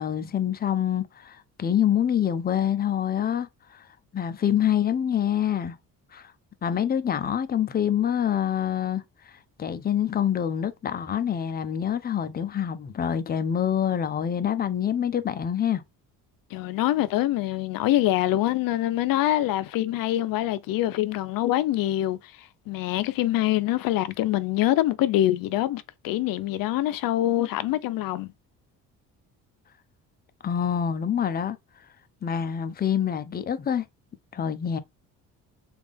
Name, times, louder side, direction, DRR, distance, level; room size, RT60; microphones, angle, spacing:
voice 1, 0.0-3.8 4.1-5.8 6.1-6.3 6.6-9.0 9.6-15.8 30.4-31.6 32.2-33.8 34.3-34.8, left 9 dB, 25° left, 0.5 m, -26 dB
voice 2, 16.5-28.3, left 14 dB, 75° left, 0.6 m, -25 dB
3.4 x 2.5 x 3.4 m
cardioid pair, 100°, 35 cm